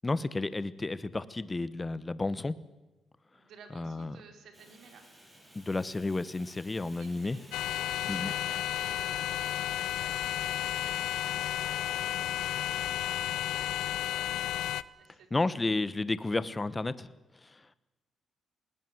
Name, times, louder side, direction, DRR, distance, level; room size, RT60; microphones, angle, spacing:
voice 1, 0.0-2.6 3.7-4.2 5.5-7.4 8.1-8.3 15.3-17.1 17.4-17.7, left 2 dB, 20° left, 16 dB, 1.1 m, -32 dB
voice 2, 3.3-5.1 6.9-15.7, right 5 dB, 75° right, 5 dB, 4.1 m, -56 dB
Fire, 4.5-11.5, right 1 dB, 15° right, 7.1 m, -56 dB
sound 1, 7.5-14.8, left 12 dB, 85° left, 0.6 m, -32 dB
20.0 x 18.5 x 8.0 m, 1.1 s
cardioid pair, 90°, 0 cm